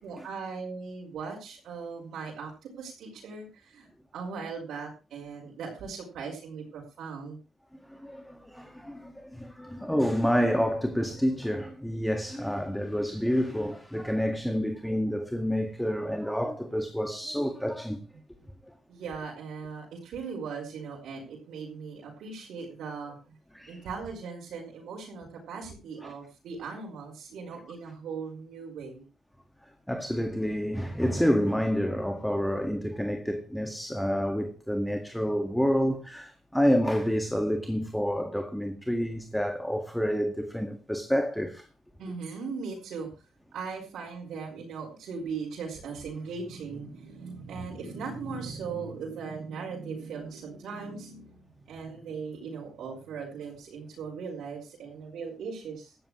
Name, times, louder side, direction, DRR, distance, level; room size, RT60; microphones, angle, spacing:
voice 1, 0.0-7.4 18.9-23.4 23.7-29.1 42.0-43.3 43.5-56.0, right 5 dB, 75° right, 5.4 m, -39 dB
voice 2, 7.9-18.0 23.5-23.8 26.0-26.1 29.9-41.7, equal, 5° left, 1.9 m, -28 dB
17.5 x 13.5 x 3.2 m
cardioid pair, 90°, 0 cm